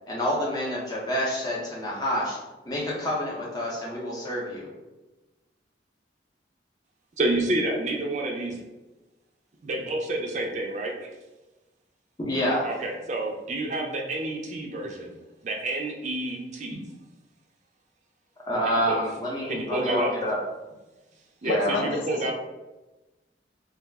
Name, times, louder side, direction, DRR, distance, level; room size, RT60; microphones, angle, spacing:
voice 1, 0.1-2.4 2.6-4.7 12.2-12.7 18.5-20.4 21.4-21.9, equal, 20° left, -4 dB, 0.6 m, -28 dB
voice 2, 7.2-8.6 9.6-11.1 12.6-15.2 15.4-16.8 18.6-19.0 19.5-20.1 21.4-22.3, right 2 dB, 40° right, 0 dB, 0.4 m, -29 dB
voice 3, 21.5-22.3, left 4 dB, 85° left, 7 dB, 0.3 m, -32 dB
2.3 x 2.0 x 3.4 m, 1.1 s
head